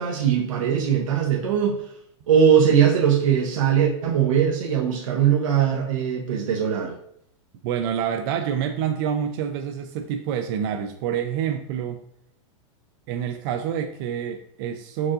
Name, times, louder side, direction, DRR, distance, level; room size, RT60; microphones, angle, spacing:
voice 1, 0.0-1.9 2.3-7.0, right 8 dB, 85° right, 0 dB, 0.7 m, -20 dB
voice 2, 7.6-12.0 13.1-15.1, right 8 dB, 45° right, 6 dB, 0.4 m, -27 dB
4.6 x 3.6 x 2.5 m, 0.71 s
supercardioid pair, 140°, 16 cm